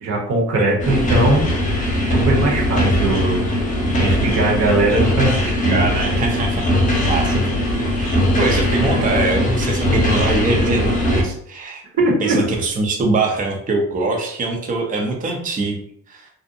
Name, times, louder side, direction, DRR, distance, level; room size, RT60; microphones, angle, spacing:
voice 1, 0.0-1.5 2.2-3.4 4.0-5.8 12.0-12.4, right 2 dB, 55° right, -2 dB, 1.0 m, -20 dB
voice 2, 0.6-1.1 4.0-4.2 5.7-6.6 6.9-7.4 8.0-11.8 12.2-16.3, right 3 dB, 30° right, 1 dB, 0.5 m, -23 dB
sound 1, 0.8-11.2, left 1 dB, 25° left, 0.7 m, -19 dB
2.6 x 2.1 x 2.5 m, 0.66 s
cardioid pair, 90°, 30 cm